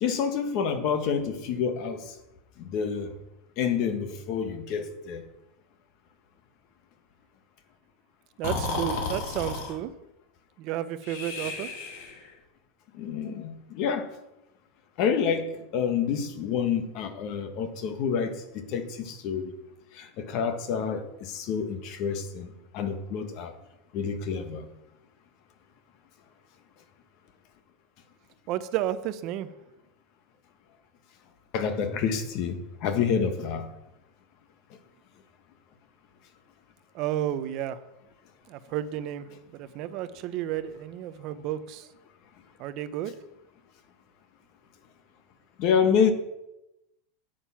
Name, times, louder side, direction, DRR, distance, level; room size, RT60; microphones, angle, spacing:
voice 1, 0.0-2.1 2.6-3.1 3.6-5.2 12.9-14.1 15.0-19.5 19.9-23.5 23.9-24.7 31.5-33.7 45.6-46.1, left 7 dB, 40° left, 9 dB, 1.3 m, -28 dB
Breathing, 8.4-9.8 11.0-12.3, left 3 dB, 60° left, 2.5 m, -33 dB
voice 2, 8.4-9.9 10.6-11.7 28.5-29.5 36.9-37.8 38.5-39.3 39.5-41.9 42.6-43.1, right 12 dB, 35° right, 13 dB, 0.6 m, -32 dB
9.0 x 8.9 x 5.8 m, 0.91 s
supercardioid pair, 170°, 0 cm